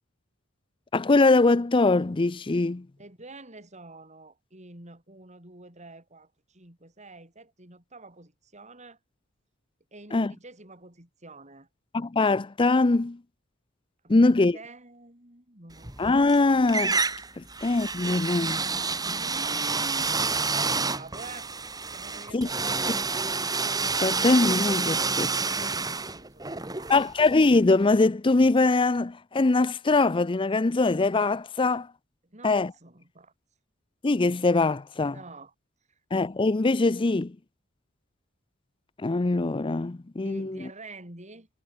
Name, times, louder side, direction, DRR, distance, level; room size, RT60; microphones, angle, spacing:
voice 1, 0.9-2.9 10.1-10.3 11.9-13.2 14.1-14.6 16.0-17.0 17.4-18.7 22.3-22.5 24.0-25.3 26.9-31.9 32.4-32.7 34.0-35.2 36.1-37.4 39.0-40.7, left 3 dB, 25° left, 0.5 m, -22 dB
voice 2, 3.0-9.0 9.9-11.7 14.0-16.1 19.1-21.5 21.9-23.2 24.8-27.1 32.2-33.3 35.1-35.5 35.9-36.0 40.2-41.5, right 2 dB, 35° right, 5.9 m, -47 dB
sound 1, 15.8-16.4 16.7-27.6, right 4 dB, 20° right, 3.0 m, -29 dB
head